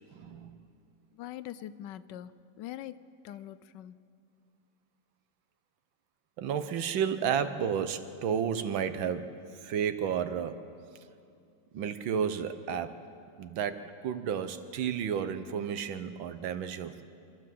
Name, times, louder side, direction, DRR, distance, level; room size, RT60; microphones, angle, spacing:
voice 1, 0.1-0.6 6.4-10.7 11.7-13.0 13.4-17.0, right 8 dB, 90° right, 10 dB, 1.7 m, -32 dB
voice 2, 1.1-2.3 2.6-4.0, left 12 dB, 75° left, 15 dB, 1.2 m, -43 dB
28.0 x 12.5 x 7.6 m, 2.5 s
omnidirectional pair, 2.1 m